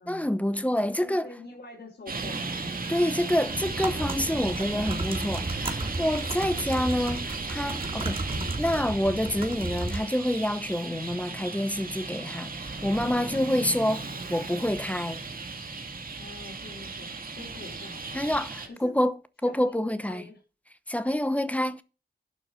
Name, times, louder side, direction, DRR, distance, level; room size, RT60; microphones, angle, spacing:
voice 1, 0.1-1.3 2.9-8.3 8.6-14.0 14.3-15.2 18.1-19.2 19.4-20.3 20.9-21.8, left 1 dB, 10° left, 0.9 m, -27 dB
voice 2, 0.8-2.7 8.2-8.5 13.2-13.7 16.1-18.4 18.6-19.0 19.4-20.4, left 3 dB, 75° left, 4.9 m, -45 dB
Traffic noise roadway noise, 2.1-18.7, right 3 dB, 55° right, 2.3 m, -36 dB
sound 1, 3.5-10.0, right 2 dB, 30° right, 2.8 m, -34 dB
12.0 x 6.5 x 5.4 m
wide cardioid pair, 135°, 17 cm